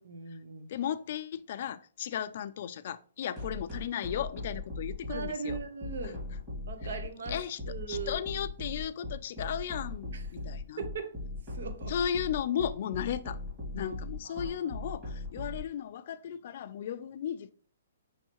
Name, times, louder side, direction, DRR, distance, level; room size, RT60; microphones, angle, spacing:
voice 1, 0.0-0.7 5.1-6.2 6.7-7.4 7.7-8.2 10.1-10.2 10.8-11.1 11.5-11.9 13.7-13.9 14.3-14.7, right 5 dB, 70° right, 0.7 m, -39 dB
voice 2, 0.7-5.6 6.0-6.2 7.3-7.6 7.9-10.8 11.9-13.4 13.7-17.5, left 9 dB, 45° left, 0.3 m, -35 dB
sound 1, 3.4-15.6, left 2 dB, 20° right, 1.8 m, -38 dB
5.5 x 3.2 x 2.9 m
hypercardioid pair, 165°, 0 cm